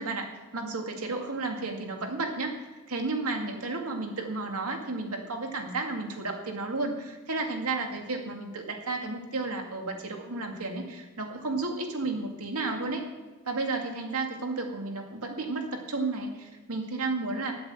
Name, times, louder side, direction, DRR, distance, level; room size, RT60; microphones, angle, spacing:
voice 1, 0.0-2.5 2.9-13.0 13.5-17.5, right 3 dB, 90° right, 3 dB, 2.1 m, -32 dB
10.5 x 8.5 x 7.7 m, 1.3 s
head